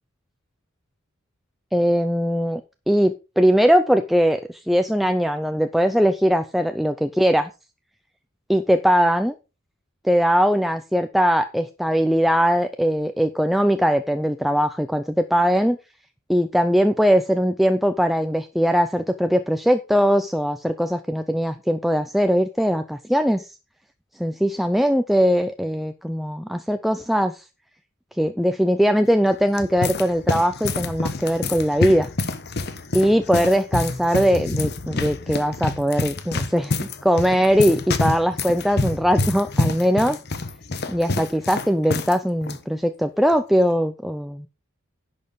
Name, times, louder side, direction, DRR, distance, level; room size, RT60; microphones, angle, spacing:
voice 1, 1.7-2.6 2.9-7.5 8.5-9.3 10.0-15.8 16.3-23.5 24.2-27.4 28.2-32.1 32.9-40.2 40.9-44.5, equal, ahead, 8 dB, 0.5 m, -20 dB
sound 1, 29.3-42.2 42.4-42.6 43.3-43.6, left 2 dB, 50° left, 1.1 m, -27 dB
10.5 x 6.6 x 5.2 m, 0.30 s
head